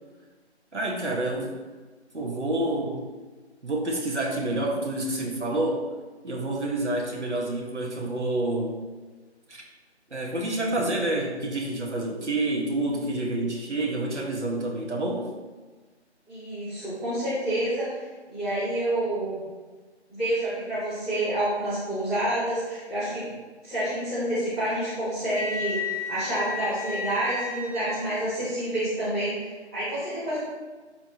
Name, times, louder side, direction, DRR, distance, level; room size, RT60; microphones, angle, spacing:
voice 1, 0.7-1.5 2.1-3.1 3.6-5.9 6.2-8.8 9.5-9.6 10.1-15.3, right 1 dB, 80° right, -1 dB, 2.0 m, -28 dB
voice 2, 16.3-17.9 18.3-19.4 20.1-23.3 23.6-30.4, right 1 dB, ahead, -19 dB, 0.8 m, -28 dB
Wind instrument woodwind instrument, 25.3-28.1, left 3 dB, 30° right, 1.1 m, -33 dB
11.5 x 4.4 x 3.2 m, 1.3 s
figure-of-eight pair, 160°, 34 cm